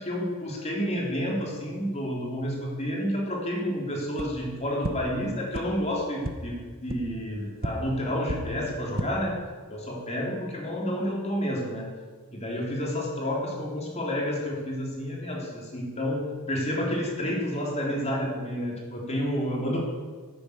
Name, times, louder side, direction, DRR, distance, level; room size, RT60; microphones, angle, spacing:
voice 1, 0.0-9.4 9.7-11.9 12.3-19.8, equal, 30° left, -1 dB, 3.4 m, -30 dB
sound 1, 4.1-4.3 4.8-4.9 5.5-5.6 6.2-6.3 6.9-7.0 7.6-7.7 8.2-8.4 8.8-9.1, right 2 dB, 45° right, 1.0 m, -31 dB
11.0 x 9.9 x 8.6 m, 1.5 s
head